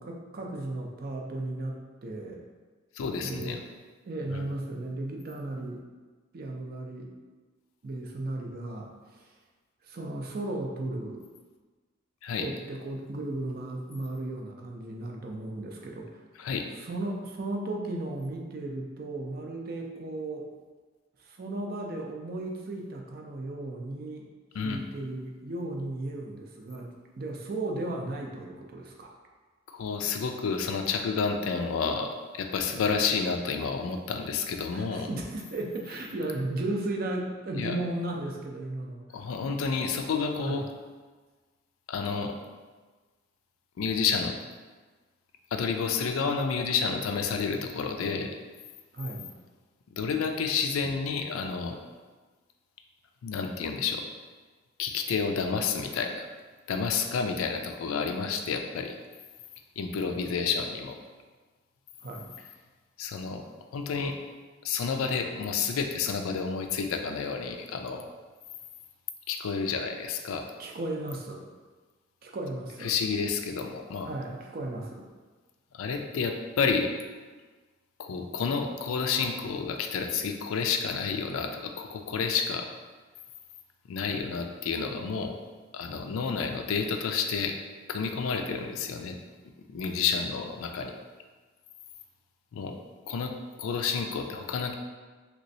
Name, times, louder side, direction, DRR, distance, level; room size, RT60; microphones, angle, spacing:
voice 1, 0.0-2.4 3.2-3.6 4.1-5.8 6.3-7.1 7.8-9.3 9.8-11.2 12.4-16.2 16.7-20.5 21.2-24.3 24.6-29.1 34.7-39.3 40.4-40.7 48.9-49.3 62.0-62.3 70.6-71.4 72.2-72.9 74.0-75.1, right 2 dB, 45° right, 1 dB, 0.4 m, -35 dB
voice 2, 2.9-3.6 4.3-4.4 12.2-12.5 16.4-16.7 24.5-24.8 29.7-35.1 37.6-37.8 39.1-40.7 41.9-42.4 43.8-44.3 45.5-48.3 50.0-51.8 53.2-54.0 54.8-56.3 56.7-59.0 59.8-61.0 63.0-63.4 63.7-64.1 64.6-68.1 69.3-70.5 72.8-74.1 75.7-76.9 78.0-82.7 83.9-85.3 85.7-87.5 87.9-89.2 89.7-90.9 92.5-92.8 93.1-93.3 93.6-94.7, left 5 dB, 90° left, 4 dB, 0.4 m, -30 dB
3.3 x 3.0 x 2.7 m, 1.4 s
head